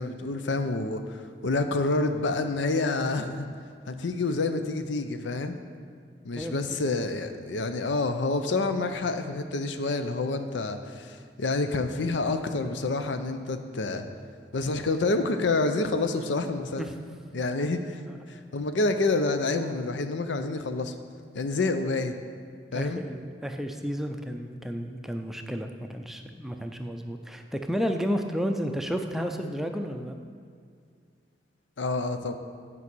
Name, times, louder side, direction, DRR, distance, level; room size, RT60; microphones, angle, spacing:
voice 1, 0.0-3.5 3.9-5.6 6.2-14.1 14.5-16.9 17.3-18.0 18.3-20.9 21.3-22.1 22.7-23.0 31.8-32.3, left 3 dB, 85° left, 8 dB, 0.6 m, -28 dB
voice 2, 6.3-6.8 16.8-16.9 18.1-18.2 22.7-30.1, equal, ahead, 4 dB, 0.4 m, -32 dB
8.5 x 5.3 x 6.1 m, 2.2 s
head